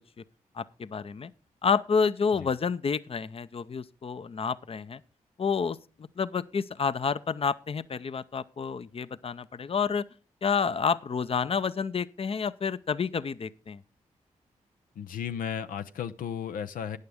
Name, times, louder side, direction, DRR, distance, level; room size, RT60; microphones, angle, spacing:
voice 1, 0.6-1.3 1.6-5.0 5.4-5.8 6.2-10.0 10.4-13.8, left 6 dB, 45° left, 0.6 m, -29 dB
voice 2, 15.0-17.0, left 8 dB, 85° left, 0.5 m, -34 dB
13.0 x 9.4 x 3.5 m
supercardioid pair, 45°, 14 cm